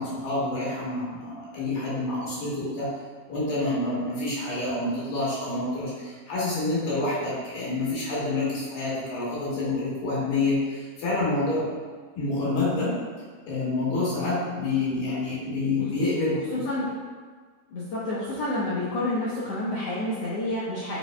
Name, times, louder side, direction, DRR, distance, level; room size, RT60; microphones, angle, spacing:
voice 1, 0.0-2.9 3.3-11.6 12.2-12.9 13.5-16.6, left 2 dB, 65° left, -8 dB, 3.4 m, -27 dB
voice 2, 16.5-16.9 17.7-21.0, left 1 dB, 90° left, -8 dB, 1.3 m, -29 dB
7.5 x 6.7 x 2.2 m, 1.5 s
omnidirectional pair, 4.2 m